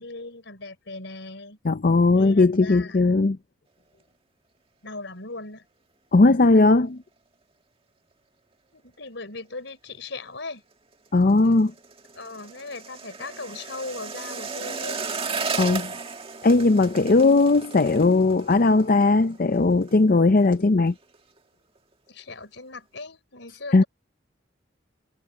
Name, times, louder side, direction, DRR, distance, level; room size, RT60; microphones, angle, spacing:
voice 1, 0.0-1.6 2.1-3.1 4.8-5.7 8.7-10.6 12.1-15.0 22.1-23.9, left 3 dB, 70° left, 5.2 m, -38 dB
voice 2, 1.6-3.4 6.1-7.0 11.1-11.7 15.6-15.9 16.4-20.9 23.7-23.8, left 3 dB, 50° left, 0.6 m, -18 dB
sound 1, 10.9-20.0 20.2-20.6 20.9-21.4 21.8-21.9, right 4 dB, 30° right, 1.9 m, -35 dB
head